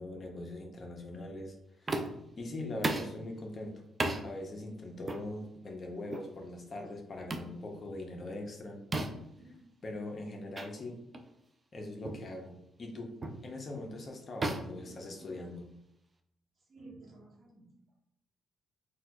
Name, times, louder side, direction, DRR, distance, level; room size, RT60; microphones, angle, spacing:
voice 1, 0.0-3.8 4.2-8.8 9.8-11.0 11.7-12.5 12.8-13.1 13.4-15.7, left 2 dB, 40° left, 2 dB, 0.6 m, -42 dB
sound 1, 1.9-2.3 2.8-3.2 4.0-4.2 5.1-5.3 6.1-6.3 7.3-7.5 8.9-9.3 10.5-10.7 11.1-11.3 12.0-12.3 13.2-13.5 14.4-15.6, right 2 dB, 30° right, 0.4 m, -35 dB
voice 2, 9.4-9.8 16.7-17.6, right 2 dB, 45° right, -2 dB, 1.0 m, -53 dB
4.2 x 2.3 x 2.2 m, 0.78 s
cardioid pair, 90°, 0 cm